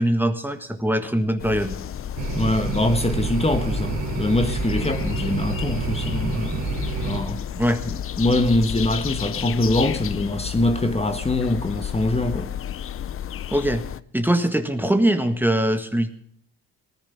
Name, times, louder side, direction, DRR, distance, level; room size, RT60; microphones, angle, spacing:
voice 1, 0.0-1.8 7.6-7.8 13.5-13.8 14.1-16.1, right 1 dB, 5° right, 1.6 m, -22 dB
sound 1, 1.4-14.0, left 9 dB, 45° left, 0.6 m, -31 dB
sound 2, 2.1-7.2, right 5 dB, 70° right, 2.7 m, -29 dB
voice 2, 2.4-6.6 7.0-7.4 7.9-12.5, left 2 dB, 20° left, 1.5 m, -23 dB
19.0 x 10.5 x 5.8 m
cardioid pair, 90°, 30 cm